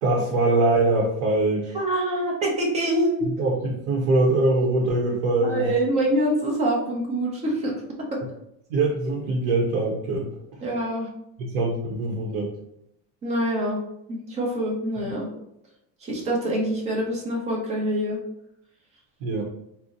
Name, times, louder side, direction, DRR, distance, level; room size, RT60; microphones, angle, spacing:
voice 1, 0.0-1.8 3.2-5.7 8.7-10.3 11.4-12.5 19.2-19.4, right 2 dB, 85° right, -2 dB, 0.8 m, -23 dB
voice 2, 1.7-3.3 5.5-7.7 8.1-8.2 10.6-11.1 13.2-13.8 14.1-15.3 16.0-18.2, right 1 dB, 15° right, -2 dB, 0.5 m, -25 dB
2.7 x 2.0 x 3.7 m, 0.78 s
cardioid pair, 170°, 39 cm